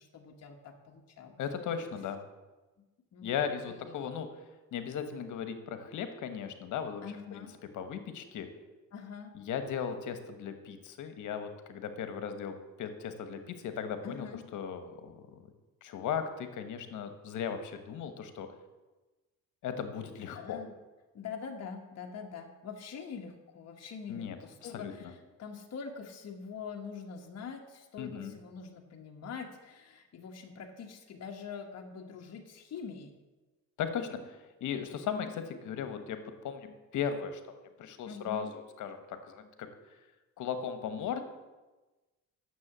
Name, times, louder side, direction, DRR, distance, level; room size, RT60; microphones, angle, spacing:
voice 1, 0.0-1.4 3.1-3.4 3.7-4.0 7.0-7.6 8.9-9.4 14.0-14.5 20.3-20.7 21.1-33.1 38.1-38.5, left 6 dB, 55° left, 2 dB, 1.3 m, -44 dB
voice 2, 1.4-2.2 3.2-4.3 4.7-7.0 7.3-7.5 7.7-8.5 9.3-14.3 14.5-15.2 15.8-18.5 19.6-20.6 24.1-24.9 28.0-28.3 33.8-37.4 37.8-39.7 40.4-41.2, left 7 dB, 80° left, 9 dB, 1.3 m, -37 dB
9.7 x 7.3 x 7.4 m, 1.2 s
cardioid pair, 90°, 30 cm